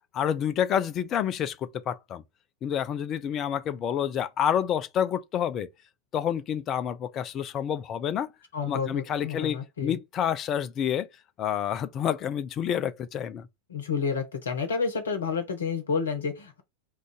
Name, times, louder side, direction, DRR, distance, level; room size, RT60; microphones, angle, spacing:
voice 1, 0.1-2.2 2.6-5.7 6.1-8.3 8.7-11.1 11.4-13.5, left 9 dB, 30° left, 0.3 m, -28 dB
voice 2, 8.5-10.0 13.7-16.6, left 5 dB, 65° left, 0.8 m, -30 dB
2.4 x 2.3 x 3.9 m
figure-of-eight pair, 90°, 0 cm